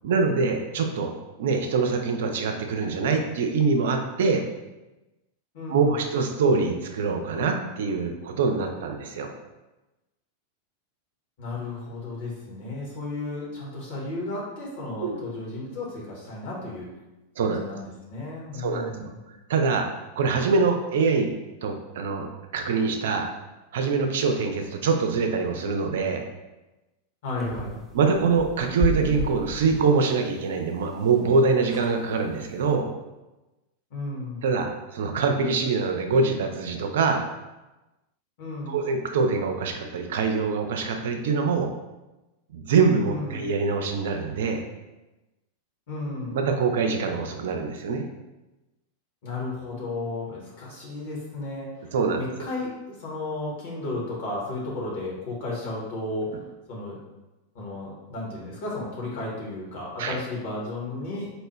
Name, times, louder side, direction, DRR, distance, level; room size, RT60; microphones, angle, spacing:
voice 1, 0.0-1.1 1.4-4.4 5.7-9.3 15.0-15.2 17.4-17.6 18.6-19.1 19.5-19.9 20.2-21.3 21.6-23.3 23.7-26.2 27.9-32.9 34.4-37.2 38.7-41.7 42.5-44.6 46.3-48.1 51.9-52.2 60.0-60.2, right 4 dB, 55° right, 5 dB, 0.4 m, -24 dB
voice 2, 5.5-6.0 11.4-16.9 17.4-19.2 27.2-27.8 33.9-34.4 38.4-38.8 43.1-43.5 45.9-46.4 49.2-51.9 52.1-56.4 56.7-57.0 57.5-61.3, left 2 dB, 50° left, -4 dB, 1.3 m, -34 dB
sound 1, 27.3-29.9 31.1-31.2 31.4-31.5 31.6-32.0 32.5-32.7, equal, ahead, 0.5 m, -31 dB
4.2 x 2.1 x 3.2 m, 1.0 s
figure-of-eight pair, 90°, 0 cm